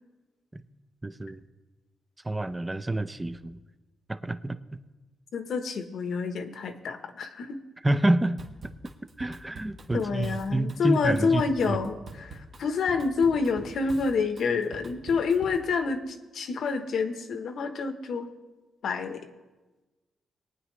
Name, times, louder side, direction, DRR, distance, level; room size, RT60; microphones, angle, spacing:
voice 1, 1.0-1.4 2.2-3.6 4.1-4.6 7.8-8.4 9.2-11.4 11.7-11.8, right 1 dB, 15° right, 11 dB, 0.5 m, -28 dB
voice 2, 5.3-7.6 9.9-18.3 18.8-19.3, left 5 dB, 65° left, 7 dB, 1.0 m, -28 dB
Drum kit / Drum, 8.4-15.7, right 2 dB, 45° right, 1.4 m, -45 dB
21.0 x 9.3 x 3.2 m, 1.2 s
cardioid pair, 115°, 0 cm